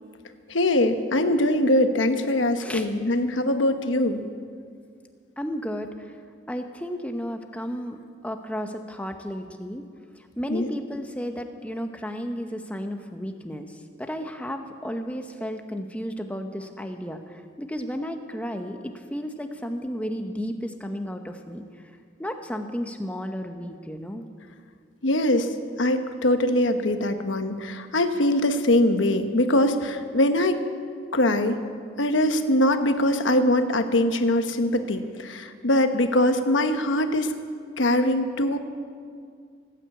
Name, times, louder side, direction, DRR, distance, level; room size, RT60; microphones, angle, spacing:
voice 1, 0.5-4.2 10.5-10.7 25.0-25.5 25.8-30.6 31.1-31.6 32.0-37.3 37.8-38.6, left 1 dB, 85° left, 7 dB, 1.1 m, -22 dB
voice 2, 5.4-6.2 6.5-9.9 10.4-13.7 14.0-21.6 22.2-24.2, equal, 5° left, 5 dB, 0.9 m, -33 dB
17.5 x 9.1 x 8.3 m, 2.2 s
head